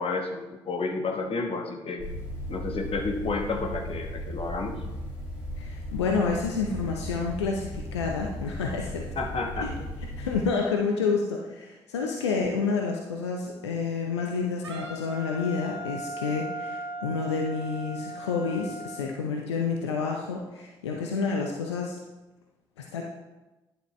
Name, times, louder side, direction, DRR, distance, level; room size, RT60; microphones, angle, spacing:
voice 1, 0.0-2.0 2.5-4.8 9.1-9.9 10.2-10.3, left 3 dB, 40° left, 3 dB, 1.3 m, -31 dB
sound 1, 2.0-10.4, equal, 65° left, 1.9 m, -37 dB
voice 2, 5.6-9.1 9.6-9.7 10.2-22.0 22.8-23.0, left 5 dB, 80° left, 1 dB, 0.6 m, -29 dB
Wind instrument woodwind instrument, 14.6-19.1, right 1 dB, 85° right, 0.7 m, -38 dB
10.5 x 6.7 x 3.2 m, 1.1 s
figure-of-eight pair, 40°, 14 cm